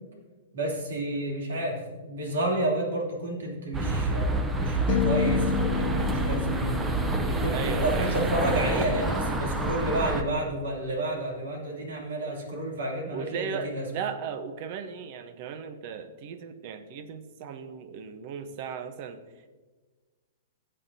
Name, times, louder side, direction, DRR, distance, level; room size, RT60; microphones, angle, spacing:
voice 1, 0.5-6.7 7.2-13.8, right 1 dB, 85° right, -1 dB, 3.0 m, -30 dB
sound 1, 3.7-10.2, right 2 dB, 15° right, 0.8 m, -28 dB
sound 2, 4.9-9.2, left 7 dB, 45° left, 1.1 m, -31 dB
voice 2, 7.5-8.2 13.1-19.2, right 7 dB, 50° right, 11 dB, 0.9 m, -36 dB
15.5 x 7.7 x 2.8 m, 1.3 s
hypercardioid pair, 135°, 0 cm